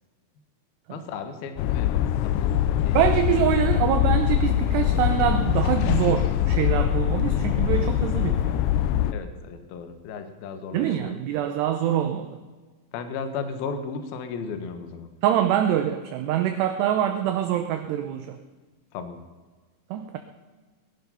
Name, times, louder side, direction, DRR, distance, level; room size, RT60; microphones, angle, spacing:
voice 1, 0.9-3.0 9.1-11.2 12.9-15.2 18.9-19.3, left 5 dB, 65° left, 8 dB, 2.7 m, -35 dB
sound 1, 1.6-9.1, left 11 dB, 85° left, 2.5 m, -23 dB
voice 2, 2.9-8.5 10.7-12.4 15.2-18.4 19.9-20.2, right 10 dB, 80° right, 7 dB, 2.6 m, -25 dB
20.0 x 11.5 x 5.6 m, 1.4 s
omnidirectional pair, 5.5 m